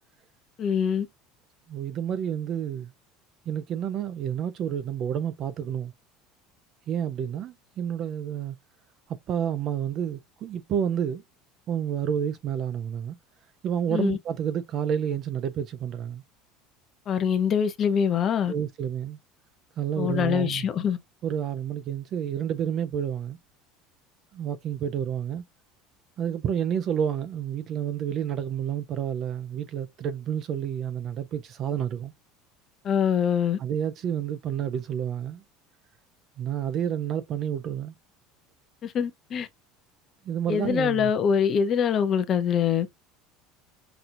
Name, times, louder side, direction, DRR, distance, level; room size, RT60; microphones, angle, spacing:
voice 1, 0.6-1.1 13.9-14.2 17.1-18.5 20.0-21.0 32.8-33.6 38.8-39.5 40.5-42.9, left 7 dB, 25° left, 0.6 m, -24 dB
voice 2, 1.7-2.9 3.5-5.9 6.9-8.6 9.1-11.2 11.7-13.2 13.6-16.2 18.5-19.2 19.8-20.6 21.2-23.4 24.3-25.4 26.2-32.1 33.6-35.4 36.4-37.9 40.2-41.1, right 9 dB, 30° right, 0.4 m, -29 dB
5.9 x 2.7 x 2.4 m
cardioid pair, 180°, 0 cm